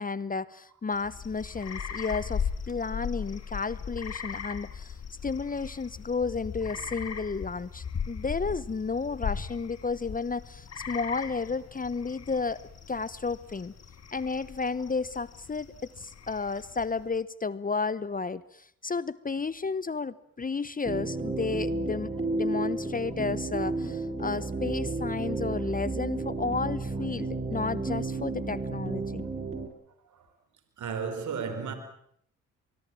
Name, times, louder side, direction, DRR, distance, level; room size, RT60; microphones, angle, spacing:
voice 1, 0.0-4.9 5.2-12.6 12.9-13.7 14.1-29.3, left 4 dB, 25° left, 1.0 m, -32 dB
sound 1, 0.9-17.1, left 7 dB, 50° left, 2.8 m, -38 dB
sound 2, 20.8-29.7, right 3 dB, 20° right, 5.7 m, -32 dB
voice 2, 30.0-30.3 30.8-31.7, right 6 dB, 65° right, 4.5 m, -34 dB
23.5 x 21.0 x 7.6 m
supercardioid pair, 55°, 32 cm